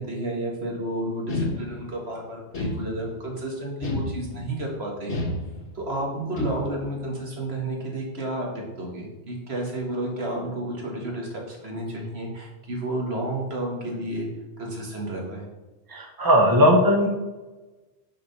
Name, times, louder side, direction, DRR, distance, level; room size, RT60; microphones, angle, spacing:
voice 1, 0.0-5.2 5.7-14.3 14.6-15.5, right 1 dB, 60° right, -1 dB, 2.0 m, -31 dB
sound 1, 1.3-2.1 2.5-3.3 3.8-4.6 5.1-5.9 6.4-7.0, left 1 dB, 70° left, 1.7 m, -31 dB
voice 2, 15.9-17.1, equal, 20° right, 0 dB, 1.2 m, -18 dB
6.1 x 4.9 x 6.7 m, 1.1 s
omnidirectional pair, 1.2 m